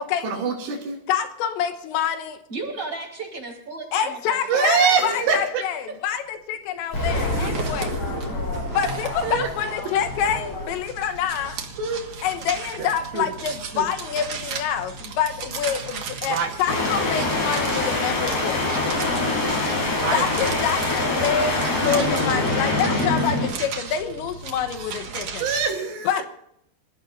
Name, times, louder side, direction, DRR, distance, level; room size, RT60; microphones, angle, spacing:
voice 1, 0.2-1.0 4.5-5.6 7.4-7.5 9.2-9.5 11.8-12.0 12.8-13.9 16.2-16.5 19.9-20.3 21.2-21.5 25.4-26.2, right 5 dB, 70° right, -3 dB, 4.2 m, -25 dB
voice 2, 1.1-2.4 3.9-8.0 8.7-11.6 12.2-18.6 20.0-25.4 26.1-26.2, left 8 dB, 90° left, 8 dB, 3.4 m, -27 dB
voice 3, 2.5-5.2, right 3 dB, 25° right, -3 dB, 5.4 m, -34 dB
Explosion, 6.9-11.8, left 1 dB, 30° left, 7.4 m, -30 dB
sound 1, 6.9-25.6, right 5 dB, 55° right, 1.6 m, -36 dB
sound 2, 7.0-10.7 16.7-23.5, left 2 dB, 55° left, 7.4 m, -25 dB
27.5 x 15.0 x 2.6 m, 0.76 s
omnidirectional pair, 5.1 m